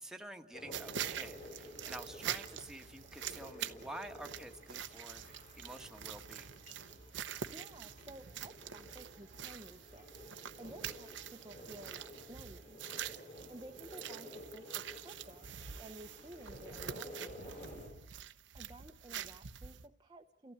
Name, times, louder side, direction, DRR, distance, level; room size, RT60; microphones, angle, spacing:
voice 1, 0.0-6.5, right 1 dB, 5° right, 4 dB, 1.3 m, -49 dB
sound 1, 0.5-17.9, left 1 dB, 40° left, 4.9 m, -53 dB
sound 2, 0.7-19.9, right 9 dB, 80° right, 0.9 m, -45 dB
sound 3, 3.2-16.2, equal, 80° left, 3.9 m, -64 dB
voice 2, 7.5-10.1 10.6-11.2 11.4-12.8 13.5-15.5 15.8-17.6 18.5-20.5, right 1 dB, 25° right, 4 dB, 0.8 m, -54 dB
29.5 x 15.0 x 8.6 m, 0.76 s
head